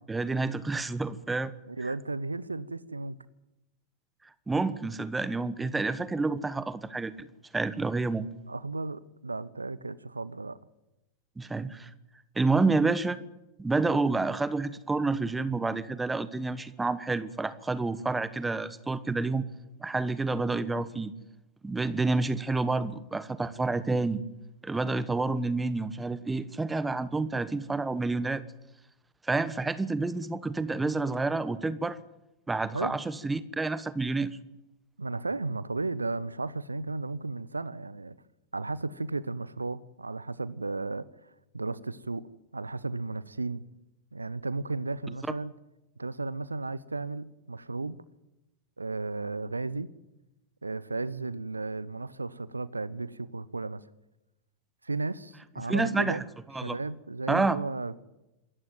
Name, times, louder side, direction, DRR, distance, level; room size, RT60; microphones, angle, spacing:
voice 1, 0.1-1.5 1.8-1.9 4.5-7.3 7.5-8.3 11.4-11.9 12.3-13.2 13.6-19.4 19.8-21.1 21.6-24.2 24.6-28.4 29.3-32.0 32.5-34.4 55.7-56.2 56.5-56.7 57.3-57.6, right 3 dB, 10° right, 1.2 m, -29 dB
voice 2, 1.7-3.2 8.5-10.6 32.7-33.0 35.0-38.2 38.5-42.3 42.5-43.6 44.1-45.5 46.0-48.0 48.8-49.9 50.6-53.8 54.8-56.2 56.6-58.0, right 3 dB, 80° right, 0.8 m, -34 dB
26.0 x 14.0 x 9.3 m
figure-of-eight pair, 90°, 0 cm